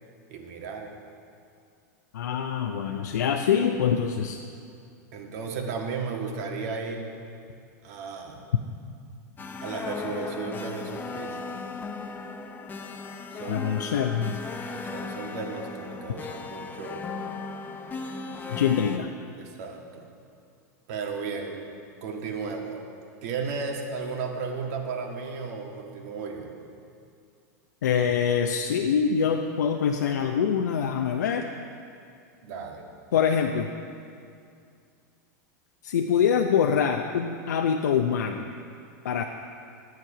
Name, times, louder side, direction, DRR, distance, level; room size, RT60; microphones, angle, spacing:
voice 1, 0.3-0.9 5.1-7.2 7.8-8.5 9.6-11.4 13.3-13.9 14.7-17.1 19.3-20.1 20.9-21.7 22.0-22.8 23.2-26.5 32.4-32.8, right 5 dB, 60° right, 2 dB, 1.7 m, -34 dB
voice 2, 2.1-4.4 13.5-14.4 18.5-19.1 27.8-31.5 33.1-33.7 35.8-38.5 39.0-39.2, left 7 dB, 80° left, 4 dB, 0.6 m, -24 dB
sound 1, 9.4-19.0, left 4 dB, 20° left, 0.7 m, -36 dB
12.0 x 9.4 x 4.8 m, 2.4 s
hypercardioid pair, 110°, 9 cm